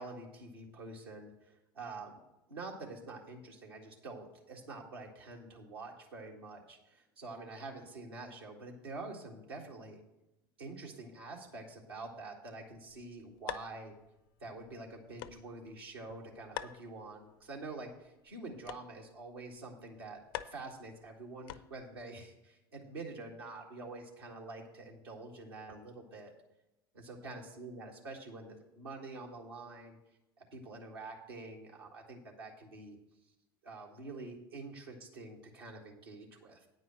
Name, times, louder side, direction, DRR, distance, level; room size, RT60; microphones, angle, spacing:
voice 1, 0.0-2.2 2.5-10.0 10.6-13.9 14.4-20.2 20.4-26.3 26.9-30.0 30.4-33.0 33.6-36.7, right 3 dB, 85° right, -2 dB, 1.7 m, -47 dB
sound 1, 12.7-22.0, left 13 dB, 65° left, 0.4 m, -49 dB
9.2 x 5.4 x 7.3 m, 0.91 s
figure-of-eight pair, 70°, 12 cm